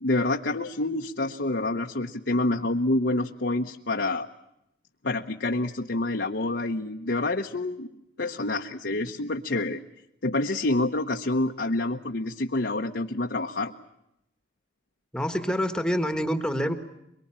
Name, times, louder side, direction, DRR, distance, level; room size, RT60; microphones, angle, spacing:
voice 1, 0.0-4.3 5.0-7.9 8.2-9.8 10.2-13.7, left 2 dB, 65° left, 2 dB, 1.0 m, -27 dB
voice 2, 15.1-16.7, equal, 5° left, 7 dB, 1.4 m, -26 dB
23.5 x 23.0 x 8.8 m, 0.81 s
head